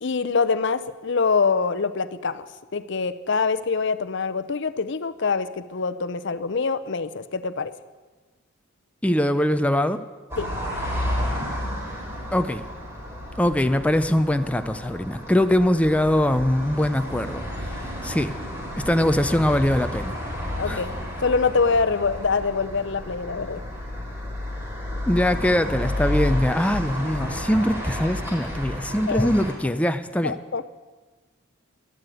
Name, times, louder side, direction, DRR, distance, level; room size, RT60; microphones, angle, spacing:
voice 1, 0.0-7.7 10.4-10.5 20.6-21.0 21.2-23.6 29.1-29.3 30.2-30.7, left 4 dB, 60° left, 13 dB, 0.7 m, -25 dB
voice 2, 9.0-10.0 12.3-12.6 13.4-17.7 18.0-18.4 18.8-20.2 20.7-20.8 25.1-30.4, left 1 dB, 5° left, 9 dB, 0.6 m, -22 dB
sound 1, 10.3-29.5, left 1 dB, 15° right, 4.3 m, -31 dB
12.0 x 11.5 x 9.2 m, 1.3 s
head